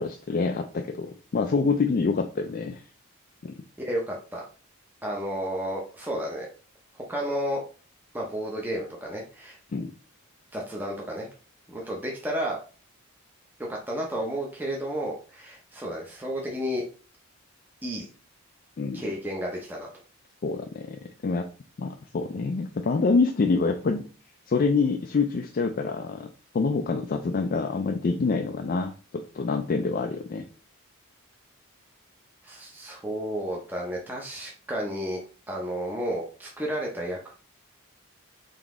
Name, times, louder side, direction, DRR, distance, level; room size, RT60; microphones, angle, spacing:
voice 1, 0.0-2.8 3.4-3.5 9.7-9.9 18.8-19.1 20.4-21.5 21.8-24.0 24.5-26.3 26.5-30.4, left 4 dB, 40° left, 3 dB, 0.3 m, -26 dB
voice 2, 3.8-4.4 5.0-6.5 6.9-7.6 8.1-9.6 10.5-11.3 11.7-12.6 13.7-16.8 17.8-18.1 18.9-19.9 32.4-35.2 35.5-37.3, equal, 10° right, -2 dB, 0.6 m, -32 dB
3.9 x 2.9 x 3.5 m, 0.37 s
head